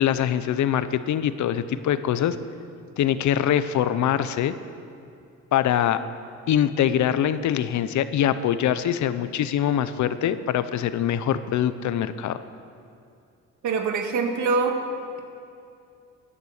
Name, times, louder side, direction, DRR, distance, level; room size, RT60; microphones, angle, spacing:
voice 1, 0.0-2.4 3.0-4.5 5.5-6.0 6.5-12.4, left 10 dB, 70° left, 13 dB, 0.8 m, -23 dB
voice 2, 13.6-14.8, right 4 dB, 75° right, 4 dB, 1.9 m, -24 dB
16.0 x 11.5 x 6.6 m, 2.6 s
cardioid pair, 90°, 30 cm